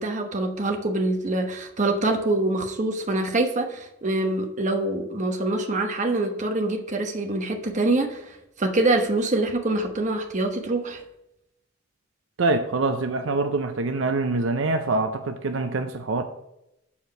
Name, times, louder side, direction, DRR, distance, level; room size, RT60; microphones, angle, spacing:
voice 1, 0.0-11.0, right 2 dB, 40° right, 4 dB, 0.9 m, -25 dB
voice 2, 12.4-16.2, right 3 dB, 70° right, 7 dB, 0.5 m, -25 dB
7.1 x 4.6 x 6.4 m, 0.86 s
head